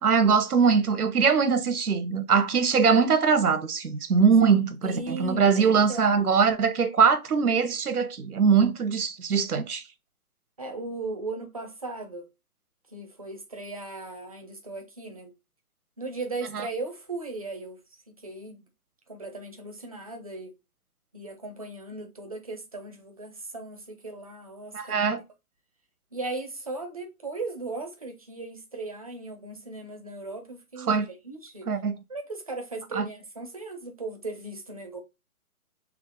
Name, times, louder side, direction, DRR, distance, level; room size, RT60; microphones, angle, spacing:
voice 1, 0.0-9.8 24.7-25.2 30.9-31.1 31.7-31.9 33.0-33.1, right 6 dB, 90° right, 0.8 m, -22 dB
voice 2, 4.8-6.2 10.6-12.3 12.9-15.3 16.0-17.8 18.1-18.6 19.1-20.5 21.1-25.1 26.1-31.7 32.1-35.0, right 3 dB, 25° right, 0.4 m, -37 dB
3.4 x 2.0 x 3.6 m
figure-of-eight pair, 145°, 43 cm